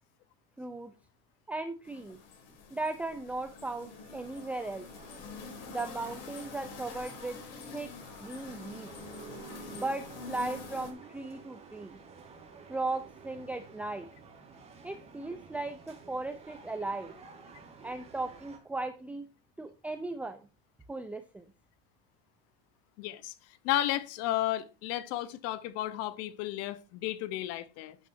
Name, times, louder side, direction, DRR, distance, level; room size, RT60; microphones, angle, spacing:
voice 1, 0.6-0.9 1.5-2.2 2.7-4.9 5.7-7.4 7.7-7.9 8.2-8.9 9.7-12.0 12.7-14.1 14.8-17.1 17.8-19.3 19.6-20.4 20.9-21.5, right 2 dB, 5° right, 0.7 m, -37 dB
sound 1, 1.8-10.9, left 4 dB, 70° left, 5.0 m, -46 dB
sound 2, 3.8-18.6, right 5 dB, 20° right, 3.6 m, -52 dB
voice 2, 23.0-23.3 23.6-28.0, left 13 dB, 55° left, 1.1 m, -33 dB
12.5 x 9.3 x 2.8 m
supercardioid pair, 135°, 30 cm